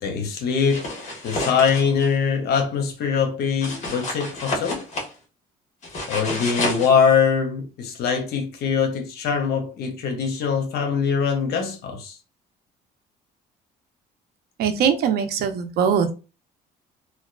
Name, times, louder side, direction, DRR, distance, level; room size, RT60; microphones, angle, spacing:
voice 1, 0.0-0.9 1.2-4.9 6.1-12.2, left 6 dB, 75° left, 0.8 m, -22 dB
sound 1, 0.6-2.1 3.6-5.1 5.8-6.9, left 2 dB, 45° left, 1.3 m, -29 dB
voice 2, 14.6-16.1, right 7 dB, 70° right, 0.6 m, -21 dB
2.9 x 2.2 x 2.3 m
cardioid pair, 110°, 17 cm